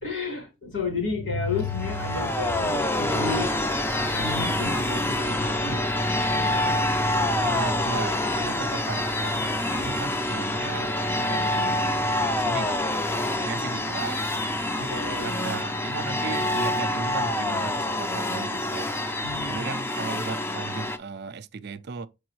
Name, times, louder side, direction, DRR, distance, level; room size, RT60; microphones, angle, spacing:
voice 1, 0.0-3.5 4.0-5.8 9.7-10.0 14.8-15.3 19.2-19.6, left 3 dB, 75° left, 3.6 m, -31 dB
sound 1, 1.5-21.0, left 1 dB, 10° left, 0.4 m, -26 dB
voice 2, 7.4-9.5 9.8-13.0 13.3-14.2 15.2-18.9 19.5-22.1, right 5 dB, 55° right, 0.4 m, -36 dB
6.9 x 4.7 x 3.0 m
head